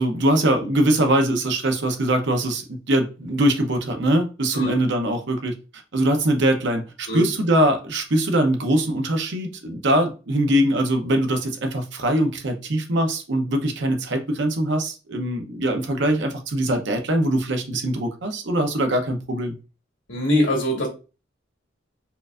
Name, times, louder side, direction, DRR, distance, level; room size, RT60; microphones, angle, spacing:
voice 1, 0.0-5.5 5.9-19.5, right 1 dB, 65° right, 0.8 m, -22 dB
voice 2, 20.1-20.9, left 1 dB, 70° left, 1.6 m, -22 dB
4.4 x 2.6 x 2.4 m
head